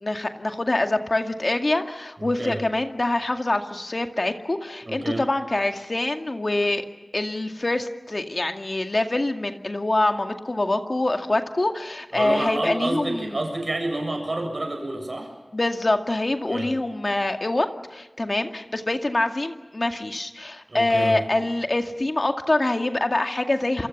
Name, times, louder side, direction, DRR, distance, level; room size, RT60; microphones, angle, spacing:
voice 1, 0.0-6.8 7.1-13.4 15.5-23.9, left 2 dB, 55° left, 5 dB, 2.1 m, -25 dB
voice 2, 2.2-2.6 4.8-5.3 12.1-15.3 16.5-16.7 20.7-21.2, right 2 dB, 70° right, 4 dB, 7.2 m, -29 dB
28.0 x 24.0 x 7.3 m, 1.2 s
wide cardioid pair, 40°, 0 cm